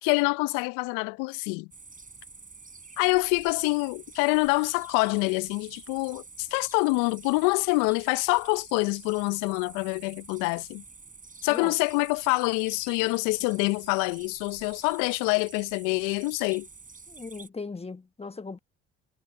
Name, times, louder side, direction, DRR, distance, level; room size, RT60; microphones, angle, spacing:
voice 1, 0.0-1.7 3.0-10.8 11.4-16.7, left 28 dB, 75° left, 0.7 m, -26 dB
sound 1, 1.7-17.5, right 4 dB, 25° right, 6.8 m, -48 dB
voice 2, 17.1-18.6, left 4 dB, 20° left, 1.4 m, -38 dB
hypercardioid pair, 55°, 32 cm